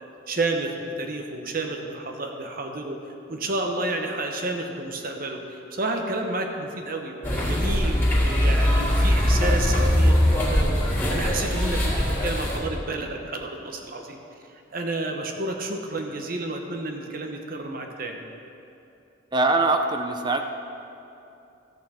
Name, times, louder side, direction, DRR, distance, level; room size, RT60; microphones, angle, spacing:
voice 1, 0.0-3.0 3.3-14.2 14.7-18.2, right 2 dB, 50° right, 3 dB, 1.0 m, -30 dB
sound 1, 7.2-12.6, equal, 10° left, 2.3 m, -21 dB
voice 2, 19.3-20.5, right 2 dB, 25° right, 5 dB, 0.4 m, -22 dB
13.5 x 8.5 x 4.3 m, 2.8 s
head